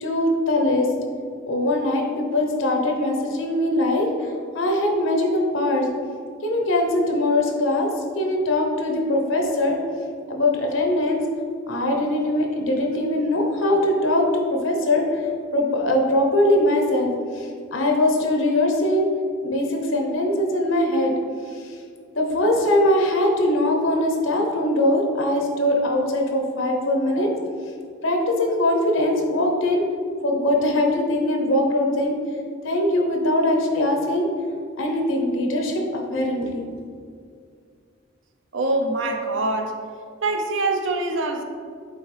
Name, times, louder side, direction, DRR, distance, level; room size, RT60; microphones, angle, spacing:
voice 1, 0.0-0.9 1.5-5.9 6.4-7.9 8.1-9.8 10.3-11.2 11.7-19.1 19.4-21.1 21.5-21.8 22.2-27.3 28.0-29.8 30.2-32.1 32.6-34.3 34.8-36.7, left 1 dB, 80° left, 1 dB, 1.0 m, -21 dB
voice 2, 38.5-39.8 40.2-41.4, right 2 dB, 75° right, 3 dB, 0.7 m, -24 dB
8.4 x 3.6 x 3.3 m, 2.2 s
head